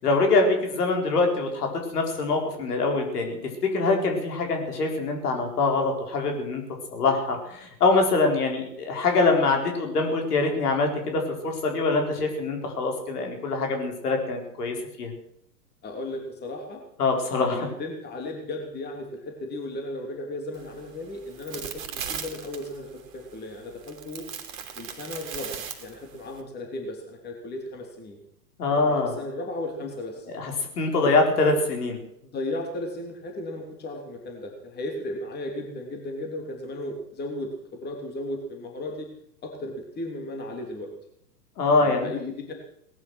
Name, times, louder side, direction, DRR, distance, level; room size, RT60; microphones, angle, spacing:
voice 1, 0.0-3.4 3.7-6.6 6.9-15.1 17.0-17.7 28.6-29.1 30.3-32.0 41.6-42.1, left 3 dB, 65° left, 3 dB, 4.7 m, -24 dB
voice 2, 15.8-16.8 17.4-24.2 24.8-28.2 28.8-30.3 32.2-39.1 39.4-40.9 41.8-42.5, left 1 dB, 20° left, 1 dB, 3.3 m, -35 dB
sound 1, 20.5-26.4, right 8 dB, 50° right, 2.9 m, -39 dB
19.0 x 11.0 x 6.4 m, 0.71 s
figure-of-eight pair, 110°, 49 cm